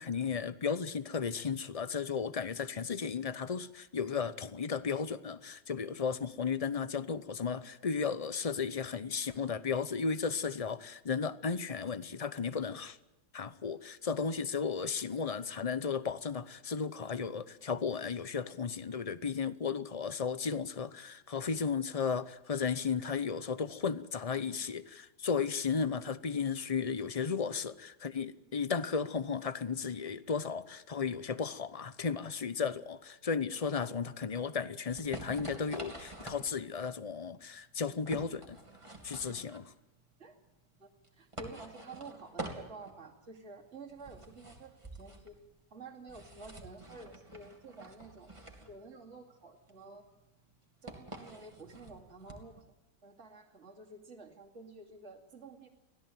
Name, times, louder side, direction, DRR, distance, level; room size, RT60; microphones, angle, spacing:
voice 1, 0.0-13.0 13.3-38.6 39.0-39.7, left 5 dB, 45° left, 0.4 m, -34 dB
sound 1, 34.9-52.6, right 2 dB, 15° right, 3.1 m, -48 dB
voice 2, 40.8-45.3 45.7-48.3 48.7-50.1 50.8-52.6 53.0-55.7, right 3 dB, 35° right, 3.1 m, -50 dB
24.5 x 16.5 x 9.2 m
omnidirectional pair, 2.0 m